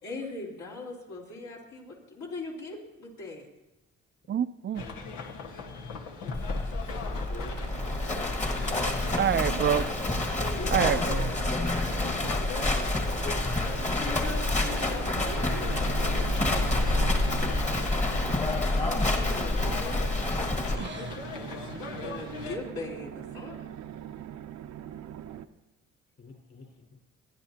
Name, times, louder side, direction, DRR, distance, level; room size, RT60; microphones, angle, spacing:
voice 1, 0.0-3.5 10.0-11.5 13.9-15.7 18.8-20.0 22.0-23.7, left 2 dB, 70° left, 3.9 m, -40 dB
voice 2, 4.3-4.9 9.2-9.9 10.7-11.3 20.8-21.2, right 9 dB, 40° right, 0.5 m, -27 dB
sound 1, 4.7-22.6, left 4 dB, 85° left, 1.5 m, -39 dB
Livestock farm animals working animals, 6.3-20.8, left 2 dB, 25° left, 1.6 m, -28 dB
voice 3, 6.8-7.5 13.0-13.4 15.8-16.2 26.2-26.8, left 3 dB, 45° left, 5.2 m, -44 dB
sound 2, 7.4-25.5, right 10 dB, 70° right, 0.7 m, -42 dB
28.5 x 10.5 x 2.9 m
cardioid pair, 90°, 30 cm